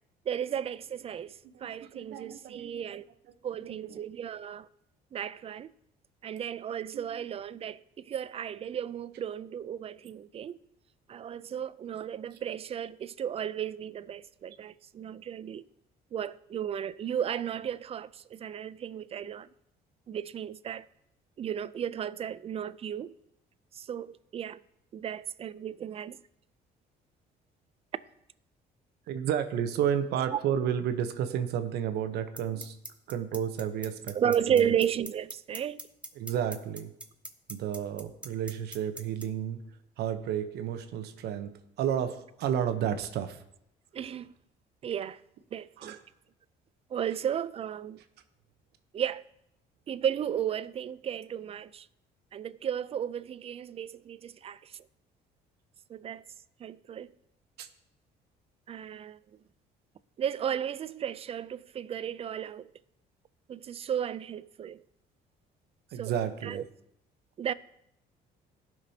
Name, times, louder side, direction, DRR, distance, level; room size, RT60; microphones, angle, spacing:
voice 1, 0.3-3.1 3.4-4.7 5.1-5.7 6.2-10.6 11.1-15.6 16.1-19.5 20.1-20.9 21.4-23.1 23.7-24.6 24.9-26.2 34.1-35.8 43.9-44.3 44.8-45.2 45.5-46.0 46.9-48.0 48.9-49.2 49.9-51.9 52.3-54.8 55.9-56.2 56.6-57.1 58.7-59.2 60.2-62.7 63.5-64.8 66.0-66.1 66.4-66.6 67.4-67.5, right 9 dB, 35° right, 0.4 m, -34 dB
voice 2, 1.4-2.7 3.3-4.0 6.9-7.0 29.1-32.7 33.1-34.7 36.2-36.9 37.5-39.6 40.0-43.4 45.8-46.0 57.6-57.7 65.9-66.6, right 9 dB, 75° right, 0.8 m, -32 dB
sound 1, 32.4-39.2, right 2 dB, 5° right, 0.7 m, -40 dB
17.5 x 6.0 x 2.8 m
cardioid pair, 110°, 17 cm